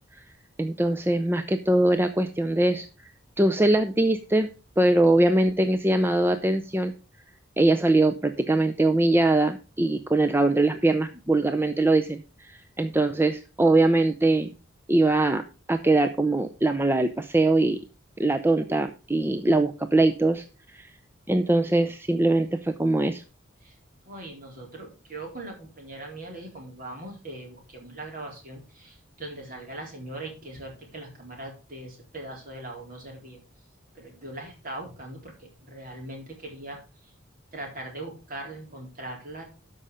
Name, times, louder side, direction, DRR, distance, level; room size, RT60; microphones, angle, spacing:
voice 1, 0.6-2.9 3.4-4.5 4.8-6.9 7.6-14.5 14.9-15.4 15.7-17.8 18.2-20.4 20.7-20.9 21.3-23.2, right 2 dB, 10° right, 7 dB, 0.5 m, -22 dB
voice 2, 24.1-33.4 34.0-36.8 37.5-39.4, right 2 dB, 45° right, 0 dB, 4.0 m, -40 dB
12.5 x 5.5 x 5.0 m, 0.33 s
head